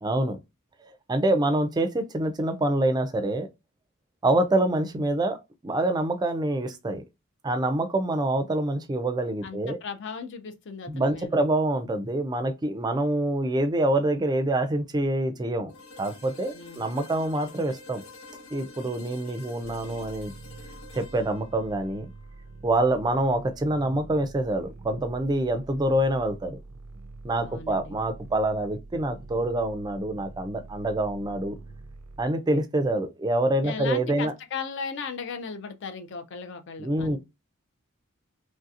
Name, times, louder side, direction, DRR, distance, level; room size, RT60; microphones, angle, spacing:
voice 1, 0.0-0.4 0.8-3.5 4.2-5.4 5.6-7.0 7.4-9.8 10.9-15.7 16.0-18.0 18.5-20.3 21.0-22.1 22.6-26.6 27.2-31.6 32.2-34.3 36.8-37.2, right 1 dB, 20° right, 0.4 m, -26 dB
voice 2, 9.4-11.4 16.5-16.9 27.4-28.0 33.6-37.2, left 5 dB, 55° left, 0.4 m, -37 dB
sound 1, 15.7-23.5, left 3 dB, 80° left, 1.4 m, -48 dB
sound 2, 19.6-32.3, right 3 dB, 80° right, 0.4 m, -45 dB
3.1 x 2.7 x 2.4 m
head